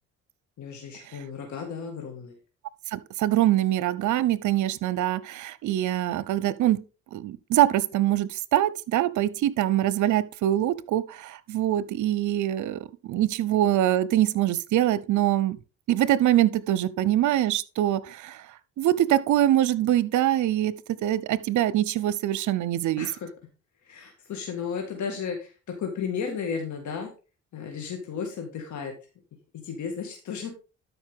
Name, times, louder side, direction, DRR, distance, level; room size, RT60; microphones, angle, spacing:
voice 1, 0.6-2.4 23.0-23.3 23.8-27.1 27.5-28.9 29.5-30.5, left 6 dB, 70° left, 1.9 m, -34 dB
voice 2, 2.9-6.8 7.1-15.6 15.9-18.4 18.8-20.7 21.0-23.1, right 13 dB, 75° right, 0.7 m, -24 dB
12.0 x 5.2 x 3.6 m
cardioid pair, 90°, 30 cm